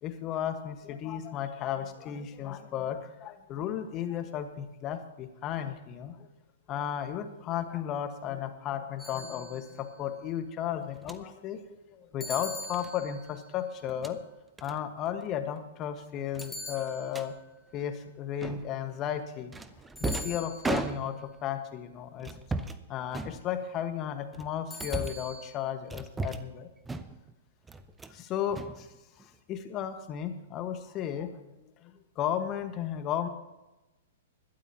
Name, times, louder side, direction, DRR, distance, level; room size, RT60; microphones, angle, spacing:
voice 1, 0.0-6.3 6.7-14.2 14.6-17.3 17.7-19.5 20.0-22.4 22.9-26.7 28.1-28.9 29.2-33.3, left 9 dB, 30° left, 8 dB, 1.5 m, -34 dB
sound 1, 9.0-9.9 12.2-13.5 16.4-17.4 20.0-20.9 24.7-25.5, left 2 dB, 5° left, 2.8 m, -42 dB
sound 2, 11.0-11.2 12.7-12.9 13.8-14.2 14.6-14.8 15.1-15.3 15.6-15.7 16.3-17.3 18.4-18.8 19.5-21.4 22.2-22.8 23.1-23.8 24.3-25.3 25.9-26.6 26.8-27.3 27.7-28.2 28.5-29.3, right 3 dB, 10° right, 0.8 m, -37 dB
21.0 x 12.0 x 2.9 m, 1.0 s
figure-of-eight pair, 110°, 0 cm